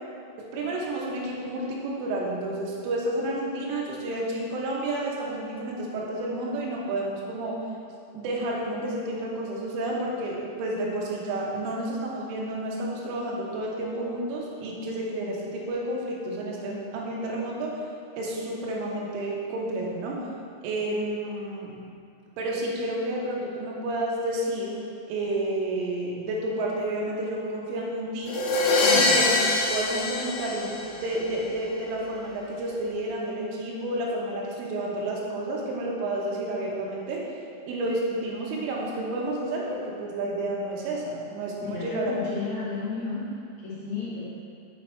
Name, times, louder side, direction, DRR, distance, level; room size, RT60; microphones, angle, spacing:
voice 1, 0.4-7.6 8.1-17.8 18.2-20.2 20.6-21.7 22.4-24.8 25.1-28.3 28.8-29.3 29.7-37.2 37.7-42.1, right 1 dB, 90° right, -3 dB, 3.6 m, -30 dB
sound 1, 28.3-31.2, left 3 dB, 90° left, 3.3 m, -23 dB
voice 2, 28.8-29.1 41.6-44.2, left 4 dB, 55° left, -11 dB, 2.2 m, -33 dB
7.5 x 5.3 x 4.6 m, 2.4 s
omnidirectional pair, 5.6 m